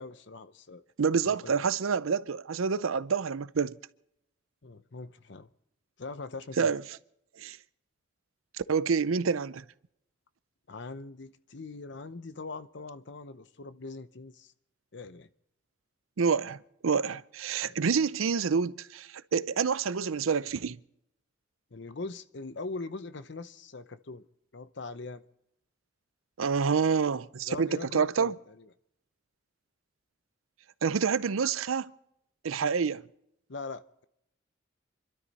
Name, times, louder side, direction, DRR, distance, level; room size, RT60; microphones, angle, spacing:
voice 1, 0.0-0.8 1.2-1.6 4.6-5.5 6.0-6.7 10.7-14.5 14.9-15.3 17.6-17.8 21.7-24.3 24.5-25.2 27.5-28.7 33.5-33.8, left 3 dB, 60° left, 0.8 m, -41 dB
voice 2, 1.0-3.8 6.6-6.8 7.4-7.6 8.7-9.6 16.2-16.6 16.8-20.8 26.4-28.3 30.8-31.9 32.4-33.1, right 5 dB, 90° right, 0.6 m, -27 dB
27.5 x 12.5 x 4.1 m
head